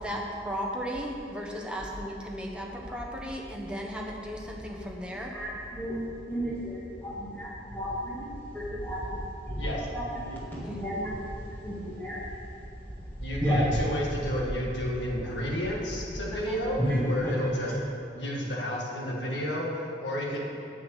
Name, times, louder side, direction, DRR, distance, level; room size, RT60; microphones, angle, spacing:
voice 1, 0.0-5.3 16.5-16.6, equal, 5° right, -2 dB, 1.2 m, -35 dB
voice 2, 4.3-4.7 5.0-17.8, equal, 10° left, -8 dB, 2.0 m, -33 dB
voice 3, 13.2-16.8 17.1-17.7 18.2-20.4, equal, 85° left, -3 dB, 2.0 m, -31 dB
8.6 x 8.4 x 6.5 m, 2.6 s
head